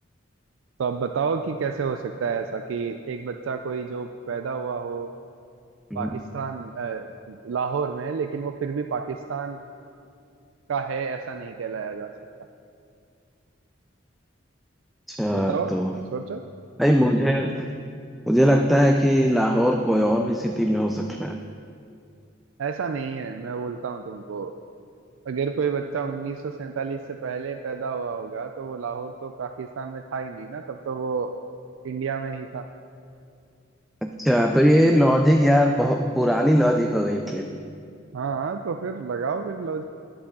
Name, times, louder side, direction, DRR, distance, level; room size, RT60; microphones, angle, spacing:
voice 1, 0.8-5.1 6.0-9.6 10.7-12.1 15.3-15.8 16.1-16.4 22.6-24.5 25.3-31.3 31.8-32.7 38.1-39.9, right 5 dB, 90° right, 7 dB, 0.4 m, -30 dB
voice 2, 15.1-15.9 16.8-17.7 18.3-21.4 34.0-37.5, equal, ahead, 3 dB, 0.3 m, -20 dB
11.5 x 11.0 x 3.7 m, 2.4 s
head